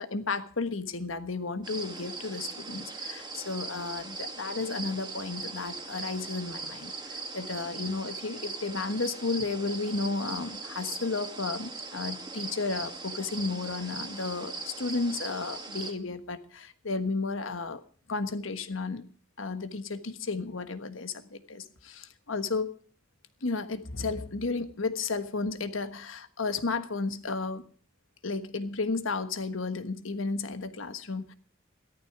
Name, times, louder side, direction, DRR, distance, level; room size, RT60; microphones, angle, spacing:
voice 1, 0.0-17.8 18.1-19.1 19.4-22.7 23.4-27.7 28.2-31.3, left 3 dB, 75° left, 11 dB, 1.4 m, -33 dB
sound 1, 1.6-15.9, right 3 dB, 20° right, 2.3 m, -40 dB
15.0 x 13.0 x 4.8 m, 0.43 s
head